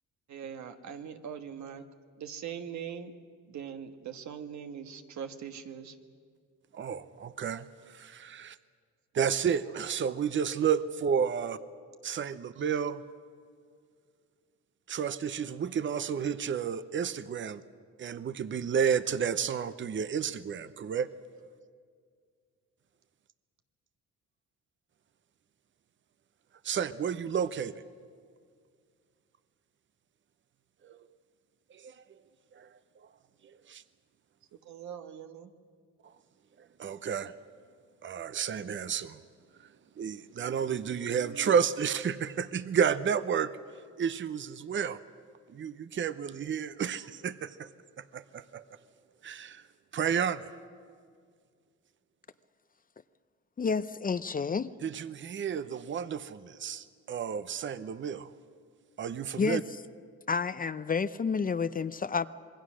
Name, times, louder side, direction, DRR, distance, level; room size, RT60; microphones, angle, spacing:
voice 1, 0.3-1.9 2.2-3.1 3.5-6.0 34.6-35.5, right 8 dB, 70° right, 7 dB, 1.5 m, -41 dB
voice 2, 6.7-8.6 9.1-11.6 12.0-13.0 14.9-17.6 18.0-21.1 26.6-27.7 30.8-31.0 31.7-31.9 32.5-32.7 33.7-33.8 36.8-37.3 38.0-39.2 39.6-39.7 40.0-43.5 44.0-45.0 45.5-47.7 48.0-48.6 49.2-49.6 49.9-50.5 54.8-58.3 59.0-59.6, right 7 dB, 40° right, 14 dB, 0.8 m, -31 dB
voice 3, 53.6-54.7 59.4-59.6 60.3-62.3, left 5 dB, 30° left, 14 dB, 0.6 m, -30 dB
26.5 x 21.5 x 6.3 m, 2.1 s
cardioid pair, 90°, 30 cm